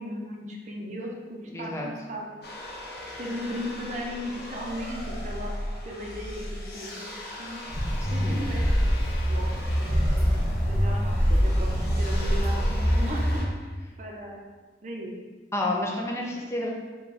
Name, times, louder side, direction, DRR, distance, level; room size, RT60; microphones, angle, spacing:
voice 1, 0.0-2.3 3.2-7.6 8.1-8.7 9.3-9.5 9.8-14.4 14.8-15.1, equal, 45° right, -1 dB, 0.6 m, -37 dB
voice 2, 1.5-1.9 8.0-8.5 15.5-16.7, left 1 dB, 15° left, -1 dB, 0.5 m, -30 dB
sound 1, 2.4-13.4, left 1 dB, 60° left, 0.7 m, -38 dB
sound 2, 7.7-13.4, equal, 15° right, 1.3 m, -29 dB
sound 3, 8.0-13.4, equal, 40° left, 1.2 m, -26 dB
3.7 x 2.3 x 4.0 m, 1.4 s
head